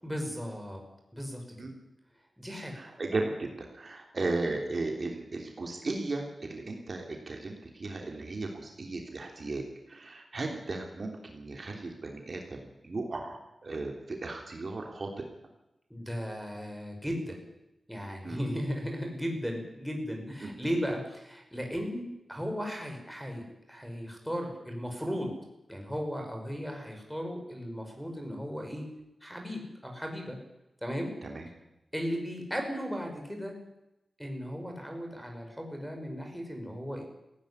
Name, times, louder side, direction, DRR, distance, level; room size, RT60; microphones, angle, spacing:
voice 1, 0.0-0.8 1.1-1.7 2.4-2.7 15.9-17.4 17.9-25.3 25.7-28.9 29.2-30.4 30.8-31.1 31.9-33.5 34.2-37.0, equal, ahead, 3 dB, 5.5 m, -36 dB
voice 2, 3.0-9.6 9.9-12.4 12.8-15.2 18.2-18.4 20.4-20.5 31.2-31.5, right 2 dB, 45° right, 2 dB, 3.3 m, -35 dB
18.0 x 16.5 x 9.9 m, 0.93 s
wide cardioid pair, 125°, 0 cm